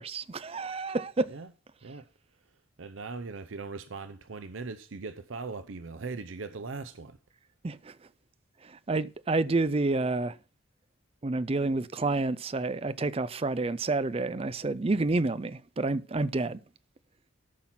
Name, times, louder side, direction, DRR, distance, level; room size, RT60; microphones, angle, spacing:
voice 1, 0.0-1.3 7.6-8.0 8.6-10.4 11.2-16.6, right 3 dB, 30° right, 0.4 m, -29 dB
voice 2, 2.8-7.2, right 4 dB, 75° right, 0.7 m, -39 dB
13.0 x 5.9 x 5.7 m
head